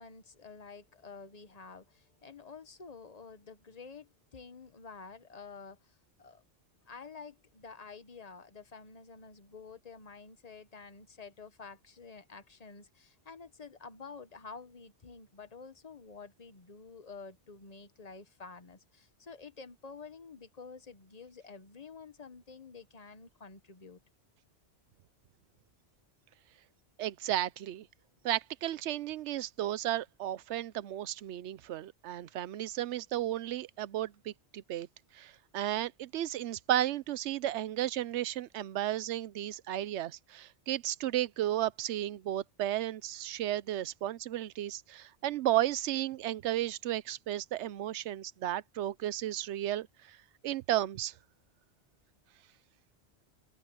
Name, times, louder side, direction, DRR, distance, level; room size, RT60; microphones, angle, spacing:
voice 1, 0.0-6.4 6.9-24.0, left 5 dB, 35° left, 1.3 m, -50 dB
voice 2, 27.0-27.9 28.2-34.9 35.1-50.2 50.4-51.1, right 13 dB, 90° right, 0.9 m, -33 dB
omnidirectional pair, 1.1 m